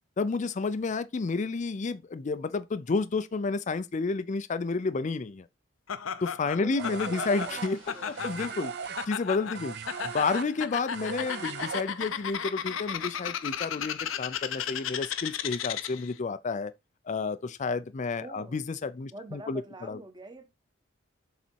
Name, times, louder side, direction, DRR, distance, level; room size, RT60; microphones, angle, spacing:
voice 1, 0.2-5.5 6.2-7.8 8.1-9.8 10.0-16.7 17.1-20.0, left 4 dB, 40° left, 0.4 m, -31 dB
Laughter, 5.9-16.1, left 8 dB, 85° left, 0.7 m, -35 dB
voice 2, 6.6-8.2 18.2-18.6 19.1-20.5, right 2 dB, 20° right, 1.1 m, -45 dB
sound 1, 6.8-12.3, right 6 dB, 55° right, 0.5 m, -38 dB
sound 2, 7.2-10.0, right 3 dB, 85° right, 3.0 m, -55 dB
7.2 x 4.0 x 4.5 m
head